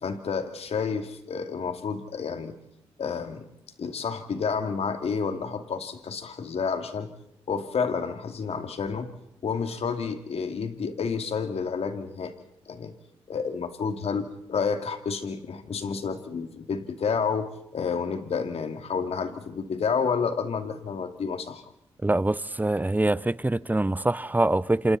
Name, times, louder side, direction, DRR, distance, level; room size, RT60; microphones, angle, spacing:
voice 1, 0.0-2.5 3.0-3.5 3.8-7.1 7.5-9.1 9.4-12.3 12.7-12.9 13.3-21.6, left 5 dB, 65° left, 2.6 m, -30 dB
voice 2, 22.0-25.0, right 2 dB, 15° right, 0.9 m, -24 dB
28.0 x 28.0 x 4.2 m
supercardioid pair, 55°, 11 cm